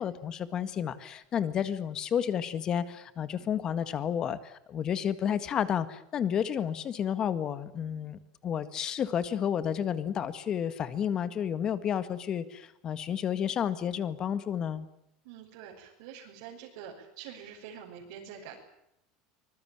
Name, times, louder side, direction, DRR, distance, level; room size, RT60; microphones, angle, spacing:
voice 1, 0.0-14.9, left 8 dB, 30° left, 13 dB, 1.8 m, -31 dB
voice 2, 15.2-18.6, right 8 dB, 70° right, -2 dB, 6.4 m, -46 dB
25.0 x 21.0 x 8.9 m, 0.80 s
cardioid pair, 160°, 3 cm